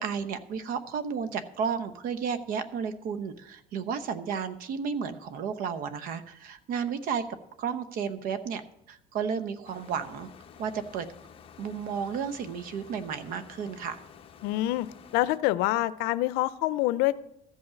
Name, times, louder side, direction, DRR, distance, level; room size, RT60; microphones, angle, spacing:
voice 1, 0.0-7.2 7.6-8.6 8.9-10.3 10.6-11.1 11.6-14.0, right 6 dB, 60° right, 12 dB, 0.9 m, -32 dB
sound 1, 9.6-15.4, left 7 dB, 35° left, 0.9 m, -51 dB
voice 2, 14.4-14.9 15.1-17.2, left 16 dB, 85° left, 16 dB, 0.5 m, -26 dB
14.0 x 5.6 x 7.0 m, 0.84 s
cardioid pair, 135°, 16 cm